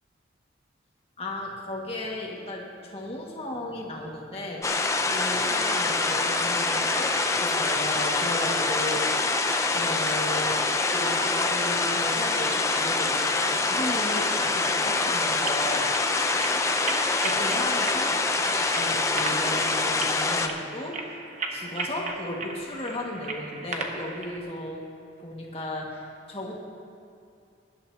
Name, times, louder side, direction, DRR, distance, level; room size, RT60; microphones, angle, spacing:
voice 1, 1.2-9.4 9.7-16.1 17.2-18.2 18.6-24.9 25.2-26.5, left 1 dB, 30° left, -2 dB, 1.7 m, -35 dB
sound 1, 4.6-20.5, left 3 dB, 15° left, 0.5 m, -25 dB
sound 2, 15.3-24.4, right 3 dB, 40° right, 1.0 m, -37 dB
21.0 x 11.5 x 2.8 m, 2.5 s
head